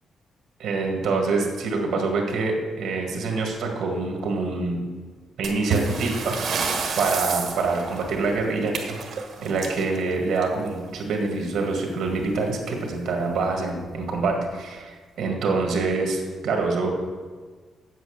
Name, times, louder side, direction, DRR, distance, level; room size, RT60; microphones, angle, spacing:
voice 1, 0.6-4.8 5.4-9.0 9.4-16.9, right 3 dB, 75° right, 2 dB, 1.9 m, -26 dB
sound 1, 5.4-10.8 12.1-12.2 12.5-12.6 13.3-13.4 14.1-14.3, right 5 dB, 55° right, 1.4 m, -30 dB
8.1 x 7.7 x 6.4 m, 1.5 s
cardioid pair, 165°, 0 cm